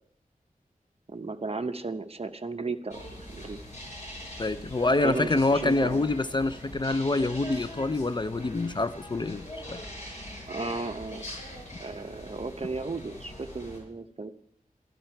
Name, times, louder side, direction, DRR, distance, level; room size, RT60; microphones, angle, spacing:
voice 1, 1.1-3.6 5.0-6.1 10.5-11.2 11.8-14.3, right 3 dB, 40° right, 0.9 m, -35 dB
sound 1, 2.9-13.8, left 1 dB, 50° left, 6.8 m, -42 dB
voice 2, 4.4-9.8, left 2 dB, 30° left, 0.4 m, -26 dB
13.0 x 13.0 x 4.5 m
wide cardioid pair, 75°, 15 cm